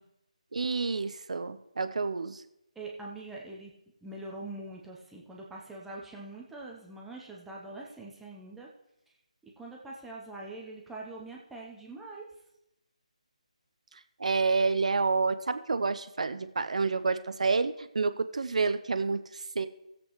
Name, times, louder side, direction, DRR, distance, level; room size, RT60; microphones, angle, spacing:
voice 1, 0.5-2.4 14.2-19.7, right 4 dB, 60° right, 12 dB, 0.7 m, -29 dB
voice 2, 2.7-3.7 4.0-8.7 9.6-12.3, right 2 dB, 5° right, -3 dB, 0.9 m, -43 dB
17.5 x 7.8 x 3.1 m, 0.85 s
figure-of-eight pair, 150°, 4 cm